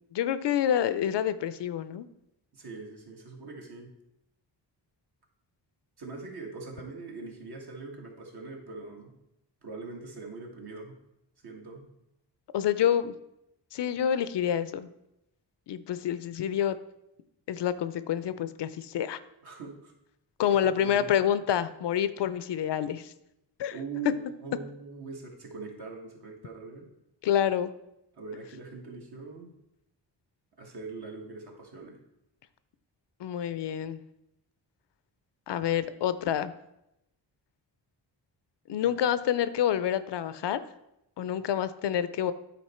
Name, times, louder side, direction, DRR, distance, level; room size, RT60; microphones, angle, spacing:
voice 1, 0.1-2.1 12.5-13.1 13.7-14.9 15.7-16.8 17.5-19.2 20.4-23.1 23.6-23.7 27.2-27.7 33.2-34.0 35.5-36.5 38.7-40.6 41.2-42.3, left 9 dB, 65° left, 14 dB, 0.5 m, -27 dB
voice 2, 2.5-3.9 6.0-9.1 9.6-11.0 11.4-11.9 19.4-19.9 20.4-21.1 23.7-26.9 28.1-29.5 30.6-32.0 38.7-39.0, right 4 dB, 55° right, 0 dB, 1.7 m, -42 dB
9.2 x 4.3 x 4.3 m, 0.86 s
cardioid pair, 85°, 45 cm